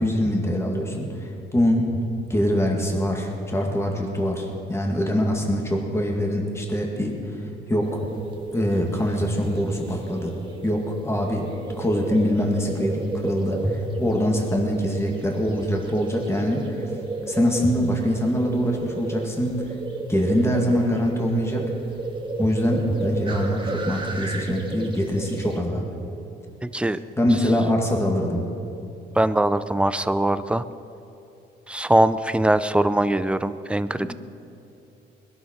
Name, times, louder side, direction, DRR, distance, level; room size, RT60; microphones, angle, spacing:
voice 1, 0.0-2.0 2.3-7.1 7.7-8.1 8.5-10.4 10.6-11.5 11.8-16.6 17.3-19.6 20.1-21.7 22.4-25.9 27.2-28.5 34.0-34.1, equal, 15° left, 0 dB, 2.2 m, -23 dB
sound 1, 7.8-25.6, right 3 dB, 25° right, 1.8 m, -33 dB
voice 2, 26.6-27.0 29.1-30.6 31.7-34.1, right 1 dB, 5° right, 13 dB, 0.5 m, -21 dB
20.5 x 11.5 x 4.6 m, 2.8 s
cardioid pair, 90°, 20 cm